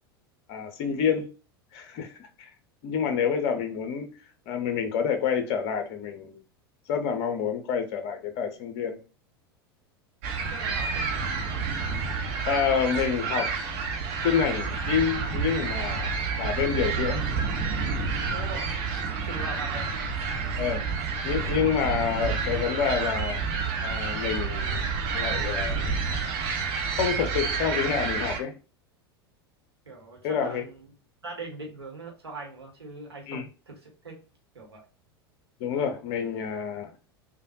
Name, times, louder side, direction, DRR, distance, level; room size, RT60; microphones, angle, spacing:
voice 1, 0.5-1.3 1.7-2.5 2.8-4.1 4.5-6.4 6.9-9.0 12.4-13.5 14.2-16.1 16.4-17.2 20.6-20.9 21.2-23.4 23.8-24.8 25.1-26.0 27.0-28.5 30.2-30.6 33.3-33.5 35.6-36.9, left 7 dB, 50° left, 0.7 m, -28 dB
sound 1, 10.2-28.4, right 5 dB, 50° right, 0.8 m, -29 dB
voice 2, 10.5-11.3 18.3-18.8 19.2-20.0 29.8-30.9 31.2-34.2 34.5-34.8, right 3 dB, 85° right, 1.1 m, -41 dB
3.3 x 2.2 x 2.7 m
figure-of-eight pair, 85°, 13 cm